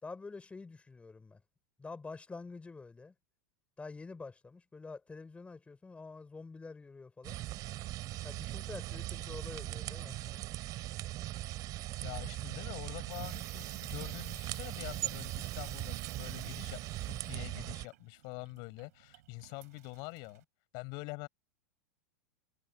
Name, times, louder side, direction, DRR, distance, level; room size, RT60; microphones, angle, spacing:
voice 1, 0.0-1.4 1.8-3.1 3.8-7.4 8.2-10.6, left 4 dB, 15° left, 6.1 m, -47 dB
sound 1, 7.2-17.8, right 16 dB, 40° right, 5.3 m, -40 dB
voice 2, 12.0-20.4 20.7-21.3, left 31 dB, 50° left, 7.6 m, -45 dB
Water tap faucet / Sink (filling or washing), 12.8-20.4, right 16 dB, 65° right, 6.1 m, -52 dB
hypercardioid pair, 100°, 9 cm